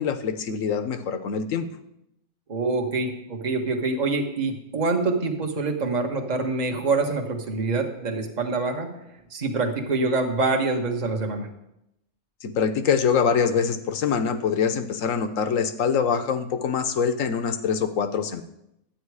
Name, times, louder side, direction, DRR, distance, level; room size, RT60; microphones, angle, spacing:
voice 1, 0.0-1.7 12.4-18.4, left 6 dB, 65° left, 10 dB, 1.2 m, -24 dB
voice 2, 2.5-8.9 9.3-11.5, right 3 dB, 30° right, 3 dB, 1.3 m, -25 dB
12.0 x 9.1 x 4.8 m, 0.83 s
omnidirectional pair, 1.5 m